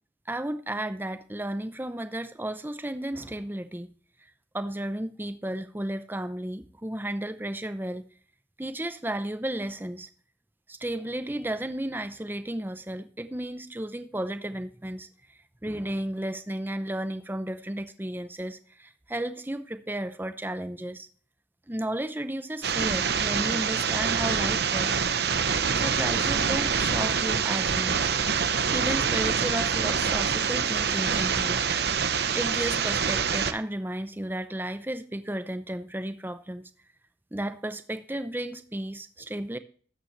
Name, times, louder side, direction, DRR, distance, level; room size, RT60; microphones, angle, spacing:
voice 1, 0.3-3.9 4.5-8.0 8.6-10.1 10.7-15.1 15.6-21.1 21.7-24.9 25.7-28.0 28.7-31.6 32.3-36.7 37.3-39.6, right 1 dB, 10° right, 0.6 m, -33 dB
sound 1, 22.6-33.5, right 6 dB, 60° right, 0.9 m, -26 dB
13.0 x 8.8 x 3.2 m
head